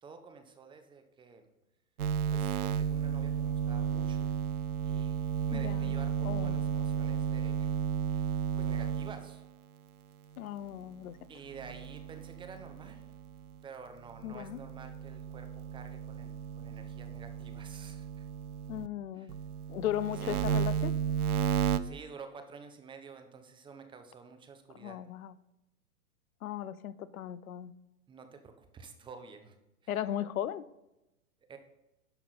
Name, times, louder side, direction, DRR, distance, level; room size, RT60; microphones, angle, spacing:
voice 1, 0.0-1.5 2.3-4.3 4.9-5.2 5.5-7.8 8.1-9.4 11.3-13.1 13.6-18.3 19.1-19.4 20.2-20.5 21.8-25.0 28.1-29.6 29.8-30.1 31.5-31.6, right 5 dB, 10° right, 7 dB, 0.8 m, -50 dB
sound 1, 2.0-9.5 11.5-13.6 14.1-18.9 19.3-21.8, right 8 dB, 80° right, 0.7 m, -33 dB
voice 2, 5.5-5.9 6.2-6.6 10.4-11.2 14.2-14.6 18.7-19.3 19.7-21.0 24.8-25.4 26.4-27.7 29.9-30.6, left 11 dB, 70° left, 17 dB, 0.6 m, -36 dB
11.0 x 5.9 x 4.1 m, 0.93 s
hypercardioid pair, 115°, 44 cm